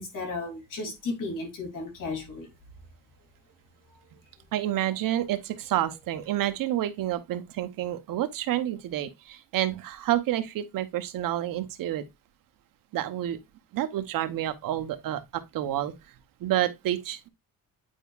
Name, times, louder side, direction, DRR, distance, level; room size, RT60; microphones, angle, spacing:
voice 1, 0.0-2.5, left 3 dB, 65° left, 3.2 m, -34 dB
voice 2, 4.5-12.0 12.9-13.4 13.7-15.9 16.4-17.3, right 13 dB, 65° right, 1.0 m, -29 dB
9.1 x 4.5 x 2.4 m
cardioid pair, 150°, 35 cm